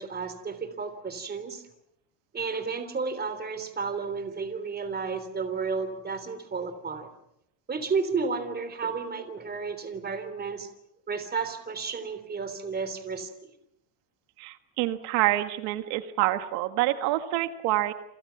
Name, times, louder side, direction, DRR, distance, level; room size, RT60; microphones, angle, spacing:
voice 1, 0.0-1.6 2.3-7.1 7.7-10.7 11.1-13.5, right 5 dB, 20° right, 11 dB, 3.5 m, -32 dB
voice 2, 14.4-17.9, right 16 dB, 80° right, 9 dB, 1.8 m, -27 dB
29.0 x 28.0 x 6.0 m, 0.80 s
cardioid pair, 145°, 46 cm